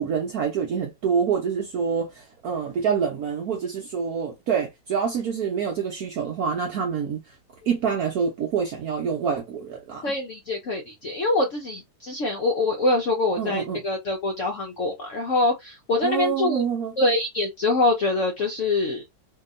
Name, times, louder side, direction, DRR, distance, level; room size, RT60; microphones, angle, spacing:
voice 1, 0.0-7.3 7.7-10.1 13.4-13.8 16.0-16.9, right 6 dB, 65° right, 1.0 m, -26 dB
voice 2, 10.0-16.6 17.0-19.0, left 2 dB, 65° left, 0.7 m, -24 dB
2.9 x 2.7 x 2.4 m
omnidirectional pair, 2.0 m